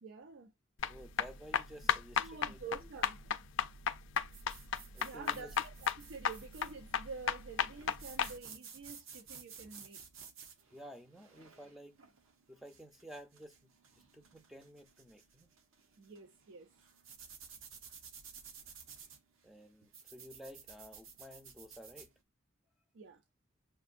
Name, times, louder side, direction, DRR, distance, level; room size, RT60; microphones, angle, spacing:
voice 1, 0.0-0.5 2.2-3.3 4.7-10.0 16.0-16.7 22.9-23.2, right 4 dB, 70° right, 0.5 m, -49 dB
sound 1, 0.8-8.3, left 7 dB, 70° left, 0.4 m, -34 dB
voice 2, 0.9-2.6 4.9-5.5 10.7-12.0 12.5-15.5 19.4-22.1, equal, ahead, 0.5 m, -53 dB
sound 2, 4.3-22.1, right 6 dB, 85° right, 0.9 m, -55 dB
6.5 x 2.5 x 2.5 m
head